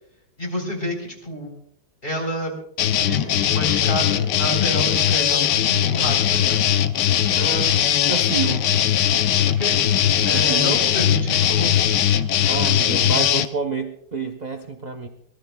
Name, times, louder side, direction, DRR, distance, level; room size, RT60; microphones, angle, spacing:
voice 1, 0.4-1.5 2.0-6.6 9.6-9.8 10.2-11.7, equal, 25° left, 2 dB, 4.1 m, -29 dB
sound 1, 2.8-13.5, left 10 dB, 70° left, 1.3 m, -20 dB
voice 2, 7.4-7.8 8.1-8.7 10.3-10.8 12.5-15.1, right 5 dB, 40° right, 4 dB, 0.6 m, -28 dB
24.0 x 18.5 x 2.3 m, 0.67 s
omnidirectional pair, 2.0 m